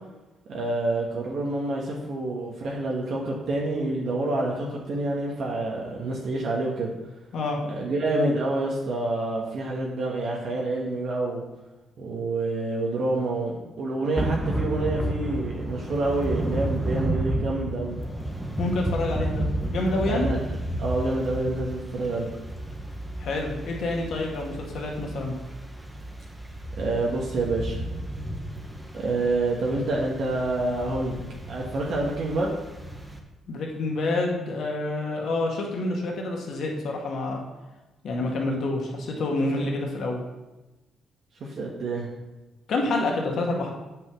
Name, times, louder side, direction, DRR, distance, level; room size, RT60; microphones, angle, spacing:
voice 1, 0.5-6.9 7.7-11.4 12.0-18.0 20.1-22.3 26.8-27.8 28.9-31.2 31.5-32.6 39.4-39.6 41.4-42.1, right 2 dB, 65° right, -3 dB, 1.6 m, -27 dB
Thunder / Rain, 14.1-33.2, right 1 dB, 10° right, 1.4 m, -32 dB
voice 2, 18.6-20.3 23.2-25.3 33.5-37.4 38.0-40.2 42.7-43.7, left 2 dB, 65° left, 0 dB, 2.1 m, -28 dB
8.3 x 5.5 x 6.2 m, 1.1 s
cardioid pair, 90°, 0 cm